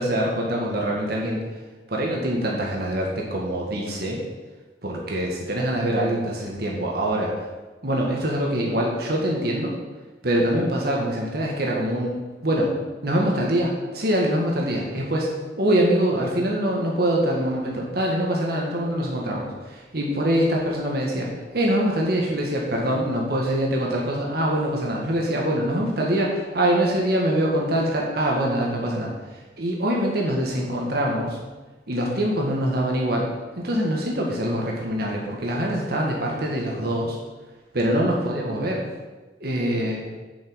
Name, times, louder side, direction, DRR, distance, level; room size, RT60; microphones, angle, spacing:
voice 1, 0.0-1.4 1.9-4.2 4.8-7.3 7.8-9.7 10.2-12.1 12.4-12.7 13.0-15.3 15.6-21.3 21.5-31.4 31.9-33.3 33.5-37.2 37.7-38.8 39.4-40.0, right 1 dB, 55° right, -1 dB, 1.6 m, -24 dB
7.7 x 5.5 x 6.8 m, 1.2 s
head